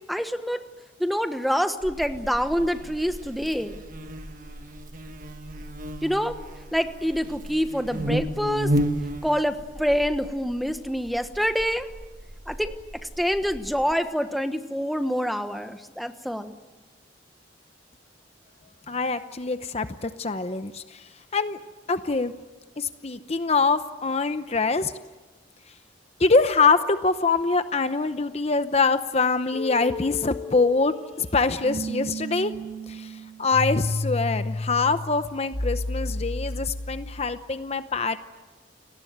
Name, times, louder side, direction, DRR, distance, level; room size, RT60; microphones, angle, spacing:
voice 1, 0.1-0.6 1.0-3.8 6.0-6.4 6.7-8.7 9.2-11.9 12.5-12.8 13.2-16.6, equal, ahead, 8 dB, 1.2 m, -26 dB
Buzz, 1.8-13.9, equal, 45° right, 1.4 m, -33 dB
voice 2, 18.9-21.0 21.3-21.6 21.9-22.3 22.8-24.9 26.2-32.5 32.9-38.2, left 4 dB, 35° left, 10 dB, 0.8 m, -24 dB
sound 1, 29.5-37.4, left 1 dB, 55° left, 4.5 m, -32 dB
29.5 x 19.5 x 8.0 m, 1.2 s
head